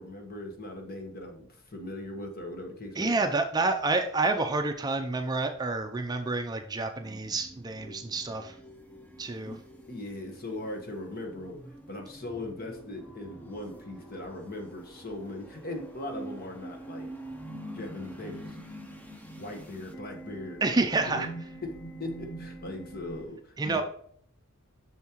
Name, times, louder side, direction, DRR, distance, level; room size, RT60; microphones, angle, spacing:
voice 1, 0.0-3.3 9.5-9.6 9.9-17.1 17.7-18.6 19.4-21.3 21.6-23.8, left 2 dB, 45° left, 4 dB, 1.2 m, -40 dB
voice 2, 3.0-8.5 9.2-9.5 20.6-21.3 23.6-23.8, right 3 dB, 20° right, 6 dB, 0.4 m, -28 dB
sound 1, 7.0-23.3, right 1 dB, 10° left, 0.7 m, -45 dB
7.1 x 6.3 x 3.0 m, 0.63 s
head